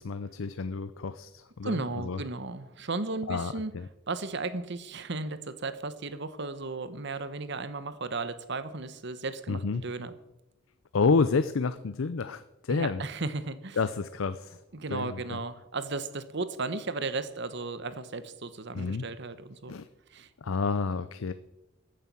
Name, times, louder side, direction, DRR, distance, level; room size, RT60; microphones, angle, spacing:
voice 1, 0.0-1.8 2.0-2.2 3.3-3.9 9.5-9.8 10.9-13.0 13.8-14.6 14.9-15.4 18.7-19.0 19.7-19.9 20.4-21.3, left 4 dB, 80° left, 13 dB, 0.6 m, -29 dB
voice 2, 1.6-3.7 4.1-10.1 12.7-13.8 14.7-19.7 20.1-20.3, right 3 dB, 60° right, 13 dB, 1.1 m, -35 dB
14.5 x 9.4 x 6.1 m, 0.93 s
head